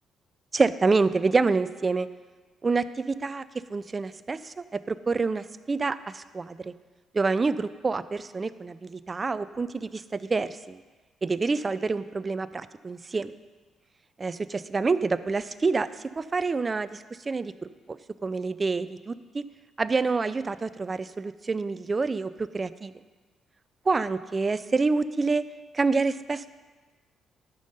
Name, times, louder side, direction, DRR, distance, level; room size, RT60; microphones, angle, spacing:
voice 1, 0.5-2.1 2.6-3.4 3.7-6.7 7.1-10.8 11.2-13.3 14.2-15.9 16.2-19.4 19.8-22.9 23.9-25.4 25.7-26.5, right 4 dB, 30° right, 14 dB, 0.4 m, -27 dB
12.5 x 5.4 x 5.3 m, 1.3 s
cardioid pair, 90°, 0 cm